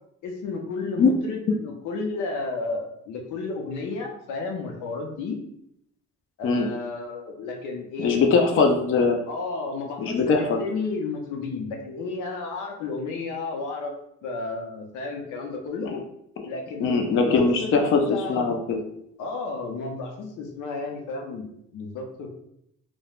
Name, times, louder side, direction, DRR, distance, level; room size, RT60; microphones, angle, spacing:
voice 1, 0.2-5.4 6.4-8.2 9.3-13.9 14.2-15.9 16.4-18.5 19.2-22.4, left 3 dB, 85° left, 2 dB, 0.6 m, -32 dB
voice 2, 8.0-9.2 10.0-10.6 15.9-16.0 16.8-18.8, left 4 dB, 45° left, 3 dB, 0.4 m, -21 dB
3.1 x 2.1 x 2.3 m, 0.75 s
cardioid pair, 90°, 30 cm